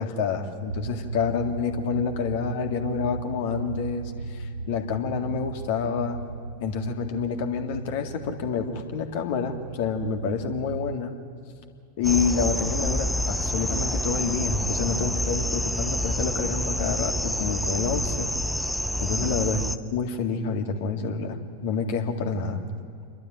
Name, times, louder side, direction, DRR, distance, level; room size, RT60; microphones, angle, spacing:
voice 1, 0.0-6.2 6.6-11.1 12.0-18.3 19.0-19.6 19.9-22.6, left 5 dB, 50° left, 4 dB, 2.0 m, -28 dB
sound 1, 0.7-11.0, right 3 dB, 80° right, 0.7 m, -36 dB
sound 2, 12.0-19.8, left 1 dB, ahead, 0.7 m, -28 dB
28.0 x 12.0 x 9.2 m, 2.4 s
figure-of-eight pair, 90°, 0 cm